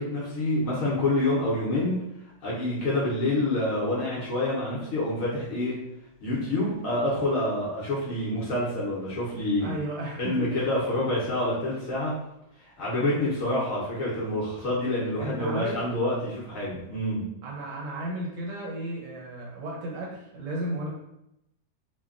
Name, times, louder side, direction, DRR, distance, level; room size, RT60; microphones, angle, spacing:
voice 1, 0.0-2.0 2.4-5.8 6.2-9.7 10.2-12.1 12.8-17.3, left 1 dB, 65° left, -7 dB, 1.1 m, -27 dB
voice 2, 9.6-10.5 15.2-15.8 17.4-20.9, right 1 dB, 65° right, -2 dB, 0.9 m, -34 dB
3.2 x 2.2 x 2.4 m, 0.84 s
omnidirectional pair, 1.6 m